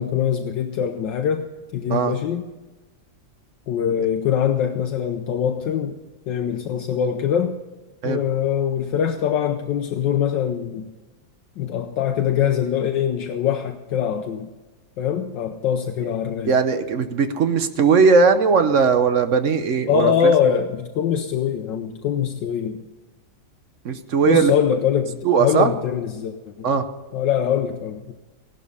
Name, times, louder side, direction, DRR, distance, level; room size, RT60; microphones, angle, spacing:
voice 1, 0.0-1.4 1.7-2.4 3.7-6.0 6.3-7.6 8.0-10.9 11.6-14.5 15.0-16.5 19.9-22.8 24.2-26.7 27.1-28.1, left 8 dB, 70° left, 6 dB, 1.4 m, -23 dB
voice 2, 16.4-20.3 23.8-24.5 25.2-25.7 26.6-26.9, right 5 dB, 55° right, 9 dB, 1.0 m, -18 dB
16.5 x 12.0 x 5.5 m, 1.2 s
omnidirectional pair, 2.1 m